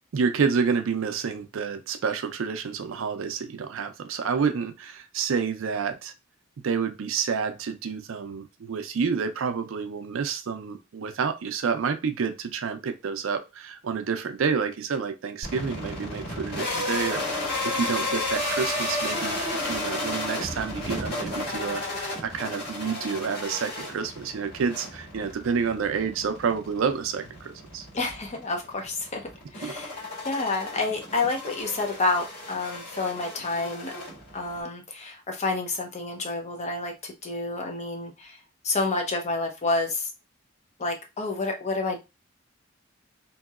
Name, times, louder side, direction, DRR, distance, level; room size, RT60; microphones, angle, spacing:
voice 1, 0.1-6.1 6.6-27.9 29.6-29.7, right 6 dB, 70° right, 8 dB, 0.4 m, -29 dB
sound 1, 15.4-34.6, left 2 dB, 50° left, 1.7 m, -33 dB
voice 2, 27.9-33.9 34.3-38.4 38.6-40.1 40.8-42.0, left 3 dB, 35° left, 3 dB, 0.6 m, -29 dB
2.9 x 2.7 x 2.4 m, 0.25 s
head